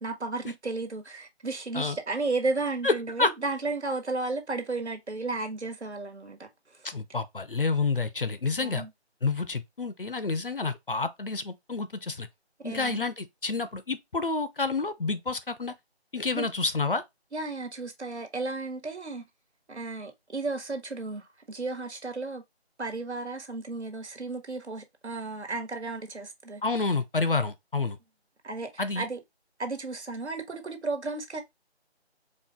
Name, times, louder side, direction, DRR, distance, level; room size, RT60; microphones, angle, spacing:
voice 1, 0.0-6.8 8.6-8.9 12.6-13.1 16.3-16.5 17.3-19.2 19.7-22.4 22.8-26.6 28.4-29.2 29.6-31.4, right 3 dB, 80° right, 1.5 m, -33 dB
voice 2, 6.8-8.9 9.2-12.3 12.6-15.7 16.1-17.0 26.6-28.0 28.8-29.1, left 3 dB, 55° left, 0.5 m, -29 dB
4.5 x 2.5 x 3.6 m
figure-of-eight pair, 175°, 33 cm